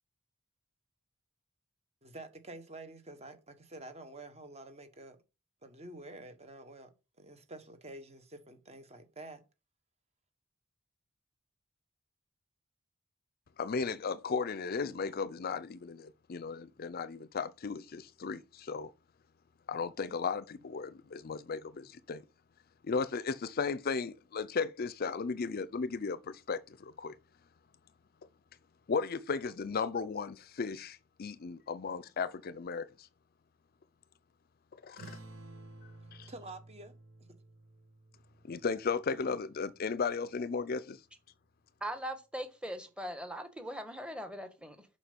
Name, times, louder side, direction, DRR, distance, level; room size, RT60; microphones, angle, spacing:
voice 1, 2.0-5.2 5.6-9.4 36.3-37.0, right 2 dB, 30° right, 1.4 m, -48 dB
voice 2, 13.6-18.9 19.7-22.2 22.8-27.2 28.9-33.1 34.8-35.2 36.1-36.3 38.4-41.0, left 5 dB, 50° left, 0.5 m, -35 dB
sound 1, 35.0-40.0, right 2 dB, 80° right, 2.1 m, -53 dB
voice 3, 41.8-44.9, equal, 5° right, 1.4 m, -40 dB
7.2 x 5.5 x 5.3 m
head